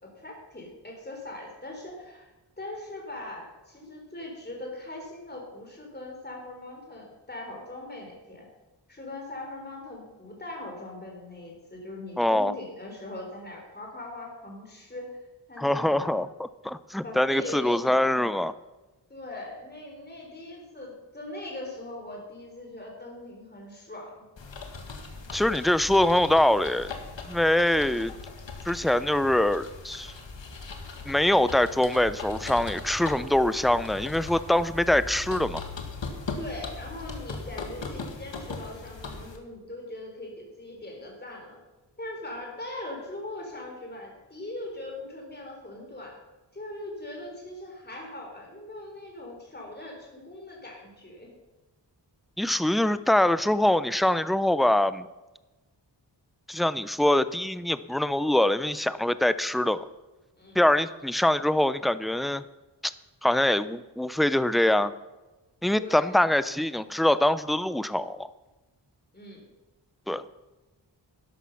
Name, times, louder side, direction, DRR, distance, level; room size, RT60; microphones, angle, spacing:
voice 1, 0.0-2.3 2.6-8.5 8.9-15.2 15.5-16.2 17.0-18.1 19.1-24.2 36.4-41.6 42.0-46.2 46.5-51.3 60.4-60.6 65.7-66.1 69.1-69.4, left 2 dB, 25° left, 0 dB, 3.7 m, -40 dB
voice 2, 12.2-12.5 15.6-18.5 25.3-26.9 27.3-28.1 28.6-30.1 31.1-35.6 52.4-55.1 56.5-59.9 60.5-62.4 62.8-62.9 63.2-64.9 65.6-68.3 70.1-70.2, left 1 dB, ahead, 14 dB, 0.5 m, -24 dB
sound 1, 24.4-39.4, left 4 dB, 85° left, 1.9 m, -39 dB
12.5 x 11.5 x 5.8 m, 1.1 s
wide cardioid pair, 95°, 43 cm